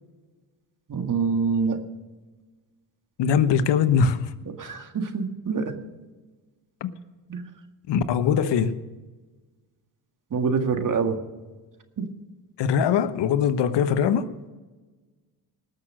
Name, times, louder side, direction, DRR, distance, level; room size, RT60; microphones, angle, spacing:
voice 1, 0.9-1.8 4.5-5.7 7.3-7.4 10.3-11.2 12.0-12.1, right 5 dB, 40° right, 1.9 m, -25 dB
voice 2, 3.2-4.3 6.8-6.9 7.9-8.8 12.6-14.3, left 7 dB, 65° left, 1.1 m, -21 dB
19.0 x 6.7 x 6.4 m
supercardioid pair, 70°, 46 cm